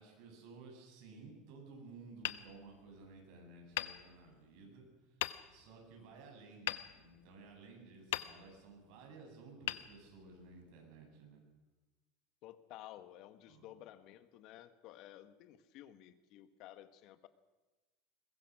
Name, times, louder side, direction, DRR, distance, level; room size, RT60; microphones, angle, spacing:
voice 1, 0.0-11.4 13.5-13.7, right 3 dB, 60° right, 1 dB, 7.8 m, -55 dB
Hammer, 2.2-3.2 3.7-4.7 5.2-5.8 6.7-7.6 8.1-8.8 9.6-10.6, left 15 dB, 90° left, 0.9 m, -42 dB
voice 2, 12.4-17.3, left 13 dB, 50° left, 12 dB, 1.6 m, -54 dB
22.0 x 21.5 x 6.3 m, 1.1 s
supercardioid pair, 145°, 0 cm